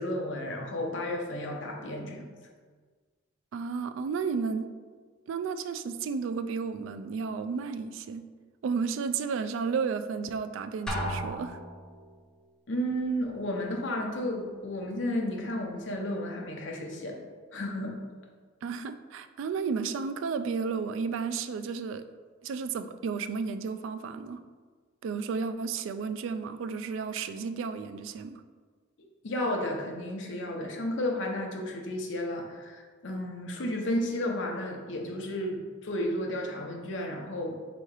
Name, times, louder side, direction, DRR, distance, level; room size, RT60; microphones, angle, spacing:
voice 1, 0.0-2.3 12.7-17.2 17.5-18.0 29.0-37.6, left 1 dB, 70° left, 1 dB, 0.7 m, -32 dB
voice 2, 3.5-4.7 5.3-8.3 8.6-11.6 18.6-22.0 22.4-24.4 25.0-28.4, right 5 dB, 80° right, 12 dB, 0.3 m, -32 dB
Drum, 10.9-12.1, equal, 5° left, 0.5 m, -34 dB
3.6 x 3.0 x 4.7 m, 1.5 s
head